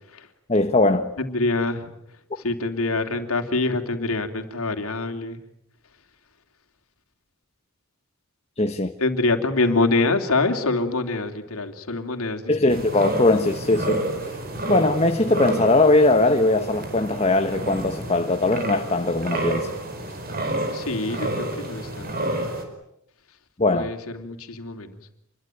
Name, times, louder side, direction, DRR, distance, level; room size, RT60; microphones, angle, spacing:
voice 1, 0.5-1.1 8.6-8.9 12.5-14.0 14.7-19.7 23.6-23.9, left 2 dB, 30° left, 1.2 m, -20 dB
voice 2, 1.2-1.9 2.4-5.4 9.0-12.8 20.7-22.3 23.7-25.0, left 3 dB, 80° left, 3.1 m, -25 dB
sound 1, 12.7-22.6, right 1 dB, 45° right, 5.3 m, -30 dB
28.0 x 22.5 x 9.2 m
head